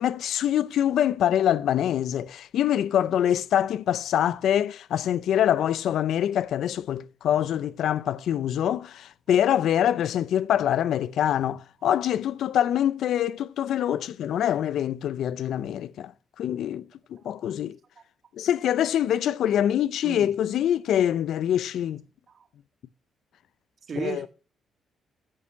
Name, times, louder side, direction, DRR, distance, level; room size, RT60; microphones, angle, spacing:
voice 1, 0.0-16.1 16.4-16.8 17.1-17.8 18.4-22.0 24.0-24.3, left 10 dB, 75° left, 0.4 m, -25 dB
voice 2, 17.2-17.7 18.0-18.1 20.0-20.3 22.3-22.5 23.9-24.3, right 6 dB, 50° right, 1.7 m, -37 dB
9.5 x 8.5 x 5.6 m
cardioid pair, 90°, 0 cm